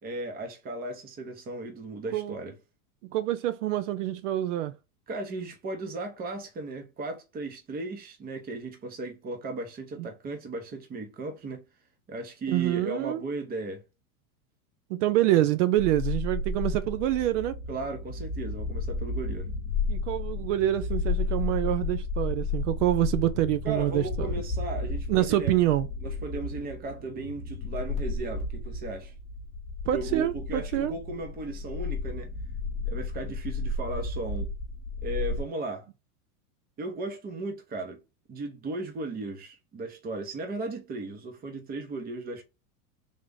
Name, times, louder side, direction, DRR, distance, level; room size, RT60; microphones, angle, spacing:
voice 1, 0.0-2.5 5.1-11.6 12.1-13.8 17.7-19.5 23.6-25.5 26.0-29.1 29.9-32.3 32.8-34.5 35.0-35.9 36.8-38.0 38.3-42.4, right 2 dB, 20° right, 0.8 m, -36 dB
voice 2, 3.0-4.7 10.0-10.1 12.5-13.2 14.9-17.6 19.9-24.3 25.1-25.9 29.9-30.9, right 14 dB, 55° right, 0.5 m, -26 dB
sound 1, 15.8-35.4, left 3 dB, 15° left, 1.1 m, -33 dB
3.5 x 2.4 x 3.8 m
supercardioid pair, 140°, 45 cm